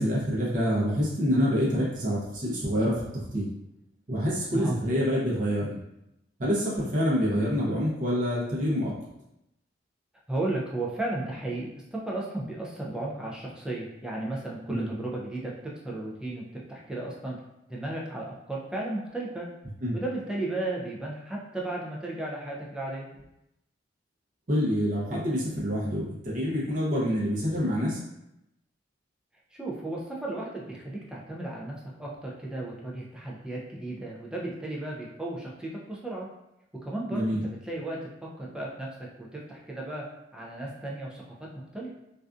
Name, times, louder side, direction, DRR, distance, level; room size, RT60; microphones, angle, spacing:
voice 1, 0.0-3.5 4.1-5.7 6.4-8.9 14.7-14.9 19.8-20.0 24.5-28.0 37.1-37.4, equal, 40° right, -6 dB, 0.6 m, -26 dB
voice 2, 10.3-16.4 16.7-17.4 17.7-19.5 19.9-23.3 29.5-36.3 36.8-38.0 38.4-38.9 39.2-40.0 40.3-41.2 41.7-41.9, right 2 dB, 5° right, -4 dB, 0.4 m, -34 dB
2.5 x 2.3 x 2.3 m, 0.85 s
head